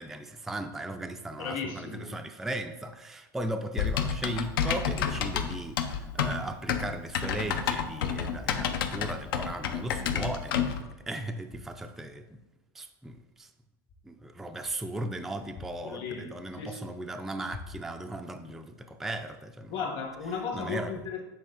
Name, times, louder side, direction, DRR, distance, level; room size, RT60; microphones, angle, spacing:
voice 1, 0.0-12.4 12.7-13.5 14.0-19.7 20.5-20.9, right 1 dB, 5° right, 6 dB, 0.3 m, -37 dB
voice 2, 1.4-2.1 15.8-16.9 19.7-21.2, left 5 dB, 45° left, 3 dB, 1.3 m, -35 dB
Typing, 3.8-10.8, left 7 dB, 80° left, 0.6 m, -29 dB
7.5 x 3.6 x 3.8 m, 1.0 s
supercardioid pair, 130°, 12 cm